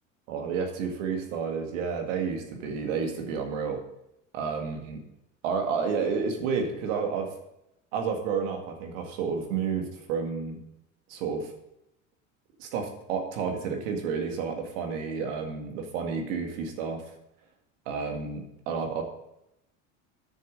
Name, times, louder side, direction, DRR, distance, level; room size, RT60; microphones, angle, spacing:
voice 1, 0.3-3.8 4.3-5.0 5.4-7.3 7.9-10.6 11.1-11.5 12.6-17.0 17.9-19.0, right 5 dB, 75° right, 3 dB, 2.1 m, -30 dB
9.4 x 6.9 x 6.5 m, 0.84 s
hypercardioid pair, 75°, 39 cm